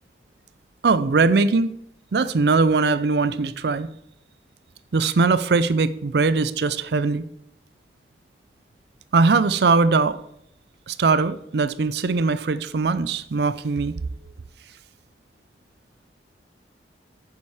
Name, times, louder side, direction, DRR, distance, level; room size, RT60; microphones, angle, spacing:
voice 1, 0.8-1.7 2.1-3.9 4.9-7.3 9.1-10.2 10.9-14.0, right 4 dB, 65° right, 0.5 m, -20 dB
9.3 x 7.1 x 4.9 m
head